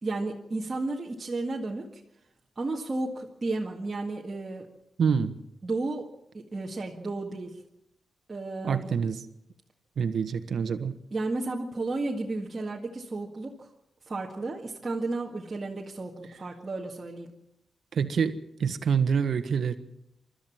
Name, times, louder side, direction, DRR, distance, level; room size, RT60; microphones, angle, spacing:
voice 1, 0.0-1.9 2.6-4.7 5.6-6.1 6.3-7.6 8.3-8.9 11.1-13.7 14.1-17.3, right 2 dB, 30° right, -2 dB, 1.9 m, -33 dB
voice 2, 5.0-5.4 8.6-9.2 10.0-10.9 17.9-19.8, right 6 dB, 65° right, 10 dB, 1.4 m, -26 dB
29.0 x 13.0 x 7.4 m, 0.83 s
wide cardioid pair, 150°, 0 cm